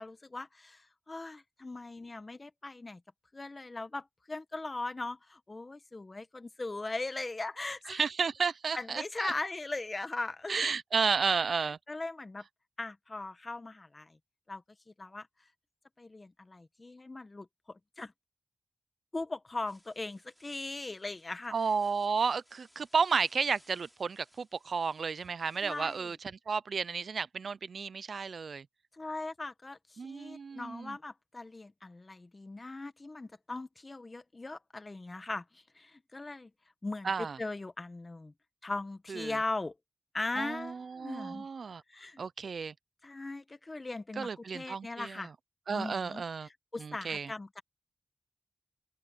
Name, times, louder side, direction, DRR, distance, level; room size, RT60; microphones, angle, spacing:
voice 1, 0.0-3.0 3.3-8.0 8.7-10.7 11.9-12.4 12.8-14.2 14.5-14.6 15.0-15.3 16.0-18.1 19.1-21.5 25.6-26.1 28.9-36.5 36.8-38.3 38.6-39.7 40.1-41.5 41.9-42.2 43.0-45.3 45.7-47.6, left 2 dB, 40° left, 1.6 m, -39 dB
voice 2, 7.9-9.3 10.5-11.8 21.5-26.2 26.5-28.7 30.0-31.0 37.0-37.4 39.1-39.4 40.4-41.8 42.2-42.7 44.2-45.2 45.7-46.5 46.8-47.3, right 5 dB, 75° right, 0.6 m, -32 dB
sound 1, 19.6-26.2, equal, ahead, 5.1 m, -65 dB
open air
cardioid pair, 45°, 0 cm